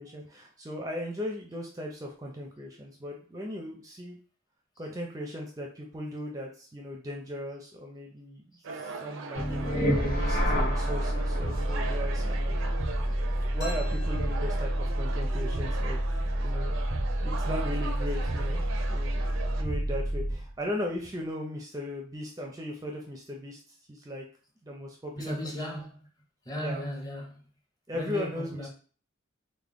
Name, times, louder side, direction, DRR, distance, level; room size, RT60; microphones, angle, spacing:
voice 1, 0.0-4.2 4.8-8.4 8.7-12.6 13.5-16.0 16.4-16.8 17.2-18.6 18.9-23.6 23.9-24.3 24.6-25.8 26.6-26.8 27.9-28.7, left 1 dB, 15° right, 0.4 m, -37 dB
sound 1, 8.6-19.6, right 4 dB, 75° right, 0.5 m, -40 dB
sound 2, 9.3-20.5, equal, 45° left, 1.8 m, -29 dB
sound 3, 13.6-15.3, left 2 dB, 60° left, 1.2 m, -47 dB
voice 2, 25.1-26.1 26.5-27.4 27.9-28.7, left 1 dB, 20° left, 0.7 m, -36 dB
3.5 x 2.1 x 3.6 m
head